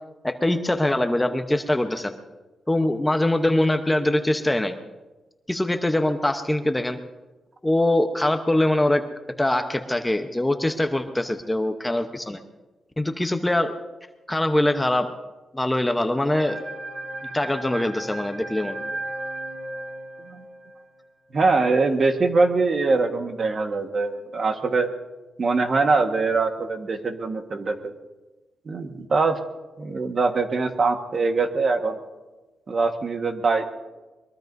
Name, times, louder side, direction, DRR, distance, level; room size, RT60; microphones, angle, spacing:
voice 1, 0.2-2.1 2.7-4.8 5.5-7.0 7.6-9.0 9.4-12.4 13.0-13.7 14.3-15.1 15.5-16.6 17.3-18.8, left 1 dB, 10° left, 6 dB, 0.9 m, -23 dB
sound 1, 16.3-20.8, right 2 dB, 70° right, 3.6 m, -35 dB
voice 2, 21.3-24.9 25.4-27.9 28.7-29.4 29.8-32.0 32.7-33.7, right 3 dB, 45° right, 5 dB, 1.4 m, -23 dB
22.5 x 22.0 x 2.7 m, 1.2 s
cardioid pair, 120°, 0 cm